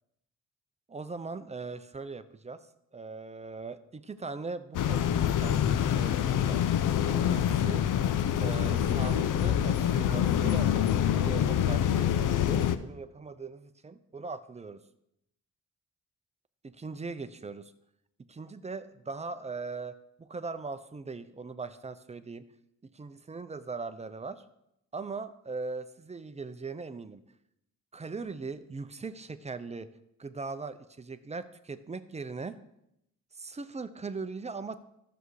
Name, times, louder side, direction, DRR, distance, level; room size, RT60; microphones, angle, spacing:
voice 1, 0.9-2.6 2.9-6.6 7.1-7.8 8.4-14.8 16.8-17.7 18.3-22.4 22.8-24.4 24.9-27.2 27.9-29.9 30.2-32.5 33.3-34.8, right 4 dB, 20° right, 12 dB, 0.6 m, -40 dB
sound 1, 4.7-12.8, left 10 dB, 85° left, 0.6 m, -26 dB
12.5 x 6.9 x 4.8 m, 0.81 s
cardioid pair, 120°, 31 cm